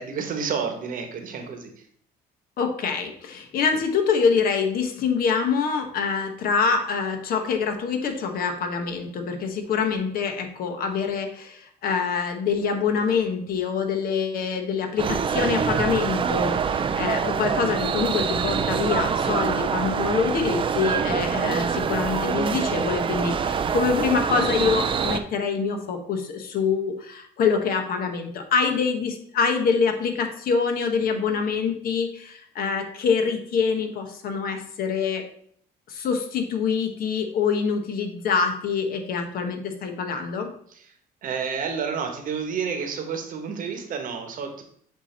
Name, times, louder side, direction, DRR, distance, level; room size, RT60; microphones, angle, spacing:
voice 1, 0.0-1.7 41.2-44.6, right 6 dB, 55° right, 5 dB, 1.2 m, -30 dB
voice 2, 2.6-35.2 35.9-40.5, left 5 dB, 60° left, 5 dB, 1.1 m, -25 dB
sound 1, 15.0-25.2, right 6 dB, 30° right, 0.4 m, -25 dB
8.0 x 2.8 x 4.3 m, 0.63 s
cardioid pair, 110°, 17 cm